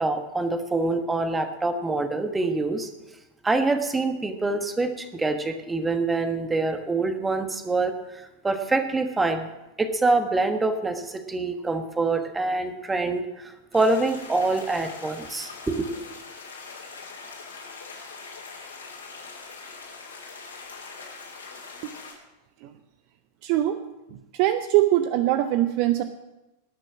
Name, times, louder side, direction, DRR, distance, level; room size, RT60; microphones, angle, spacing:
voice 1, 0.0-2.9 3.4-9.5 9.8-16.0, right 3 dB, 10° right, 8 dB, 1.3 m, -25 dB
sound 1, 13.7-22.1, left 4 dB, 70° left, 3.1 m, -42 dB
voice 2, 23.4-23.8 24.1-26.0, right 14 dB, 45° right, 11 dB, 0.6 m, -22 dB
19.5 x 6.8 x 6.1 m, 0.98 s
figure-of-eight pair, 90°, 0 cm